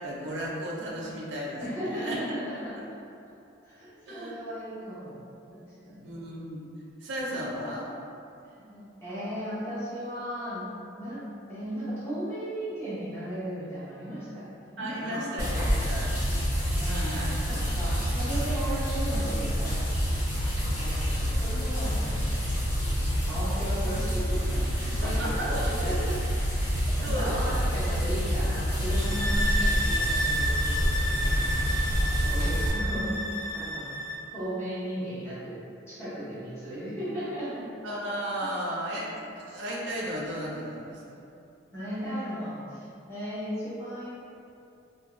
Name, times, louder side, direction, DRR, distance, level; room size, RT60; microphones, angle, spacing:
voice 1, 0.0-2.2 2.8-2.9 4.1-4.4 6.0-6.6 7.0-7.9 14.8-16.1 16.9-17.4 25.0-25.6 27.0-27.6 32.3-32.7 37.8-41.2, equal, 70° right, -5 dB, 0.5 m, -35 dB
voice 2, 1.6-2.7 3.6-5.1 5.5-6.1 8.4-10.6 11.0-11.2 11.5-16.1 16.7-20.3 20.7-22.6 23.3-26.4 27.0-31.5 32.0-33.9 34.3-35.6 35.9-37.7 41.7-44.1, equal, 15° left, -12 dB, 0.8 m, -36 dB
sound 1, 15.4-32.7, equal, 40° left, 0.9 m, -27 dB
sound 2, 28.9-34.2, equal, 70° left, 0.5 m, -31 dB
2.6 x 2.2 x 2.9 m, 2.6 s
head